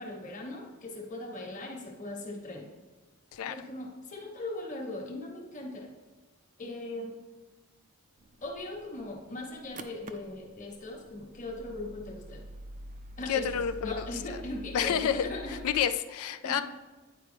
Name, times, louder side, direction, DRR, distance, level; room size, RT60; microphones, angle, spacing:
voice 1, 0.0-2.7 3.5-5.9 6.6-7.2 8.4-12.4 13.2-15.6 16.4-16.6, left 2 dB, 35° left, 0 dB, 1.2 m, -39 dB
sound 1, 8.2-15.8, equal, 35° right, 0.4 m, -47 dB
voice 2, 13.3-14.1 14.7-16.6, left 8 dB, 75° left, 11 dB, 0.4 m, -29 dB
9.5 x 4.7 x 3.4 m, 1.3 s
head